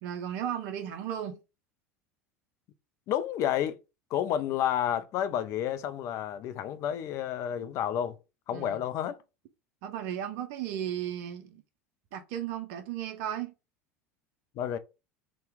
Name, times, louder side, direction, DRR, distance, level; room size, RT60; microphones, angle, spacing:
voice 1, 0.0-1.4 8.5-8.8 9.8-11.6 12.1-13.5, right 10 dB, 55° right, 0.5 m, -35 dB
voice 2, 3.1-3.8 4.1-8.2 8.5-9.2 14.6-14.8, left 10 dB, 45° left, 0.4 m, -30 dB
2.8 x 2.1 x 3.4 m
figure-of-eight pair, 75°, 7 cm